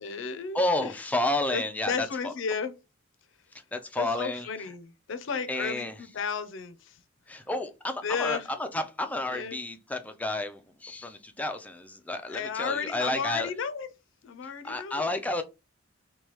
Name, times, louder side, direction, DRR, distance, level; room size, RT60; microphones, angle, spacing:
voice 1, 0.0-0.9 1.5-2.7 4.0-6.9 8.0-8.4 9.3-9.6 12.3-13.9 14.2-15.1, left 5 dB, 65° left, 0.5 m, -33 dB
voice 2, 0.5-2.3 3.7-4.5 5.5-6.0 7.3-13.5 14.4-15.4, left 2 dB, 10° left, 0.3 m, -31 dB
3.1 x 2.2 x 2.9 m
head